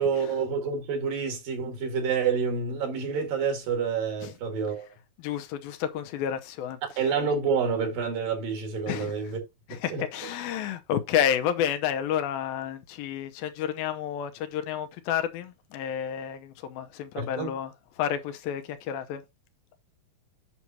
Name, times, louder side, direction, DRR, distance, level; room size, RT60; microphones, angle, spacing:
voice 1, 0.0-4.9 6.8-9.4 9.9-10.0 17.2-17.5, right 6 dB, 70° right, 3.6 m, -28 dB
voice 2, 5.2-6.8 8.9-9.1 9.7-19.2, left 9 dB, 85° left, 2.6 m, -30 dB
8.3 x 6.1 x 2.8 m
omnidirectional pair, 4.1 m